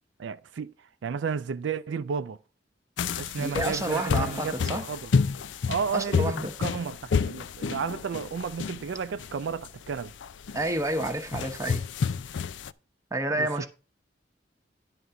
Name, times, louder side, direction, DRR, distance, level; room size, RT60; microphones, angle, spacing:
voice 1, 0.2-0.7 1.0-2.4 3.1-5.1 5.7-10.1 13.4-13.5, right 6 dB, 75° right, 0.4 m, -32 dB
sound 1, 3.0-12.7, left 5 dB, 80° left, 0.4 m, -30 dB
voice 2, 3.3-4.8 5.9-6.5 10.5-11.9 13.1-13.7, right 1 dB, 15° right, 1.0 m, -29 dB
Gong, 3.9-7.2, left 2 dB, 50° left, 1.0 m, -48 dB
11.0 x 3.8 x 6.9 m
head